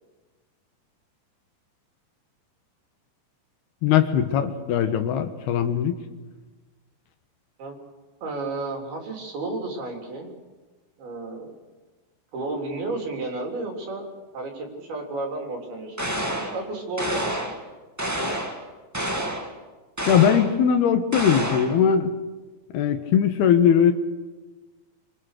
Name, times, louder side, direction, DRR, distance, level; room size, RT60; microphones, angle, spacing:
voice 1, 3.8-6.0 20.1-22.1 22.7-23.9, left 8 dB, 85° left, 8 dB, 3.5 m, -20 dB
voice 2, 8.2-10.3 11.0-11.5 12.3-14.1 14.3-16.1 16.4-17.6, right 2 dB, 75° right, 2 dB, 5.3 m, -32 dB
sound 1, 16.0-16.6 17.0-17.6 18.0-18.6 18.9-19.5 20.0-20.5 21.1-21.8, equal, 10° right, 1.0 m, -28 dB
25.5 x 25.0 x 6.7 m, 1.3 s
omnidirectional pair, 4.4 m